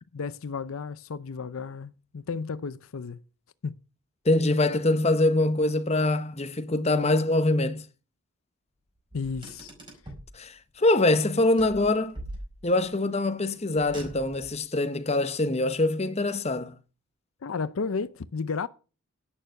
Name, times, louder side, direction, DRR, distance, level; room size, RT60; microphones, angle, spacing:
voice 1, 0.1-3.2 3.6-3.8 9.1-9.7 17.4-18.7, left 5 dB, 70° left, 0.5 m, -33 dB
voice 2, 4.2-7.8 10.3-12.1 12.6-16.8, left 2 dB, 30° left, 0.8 m, -24 dB
Car, 9.1-10.3 11.6-12.9 13.7-14.6, right 1 dB, 20° right, 4.8 m, -42 dB
11.0 x 9.1 x 6.5 m
head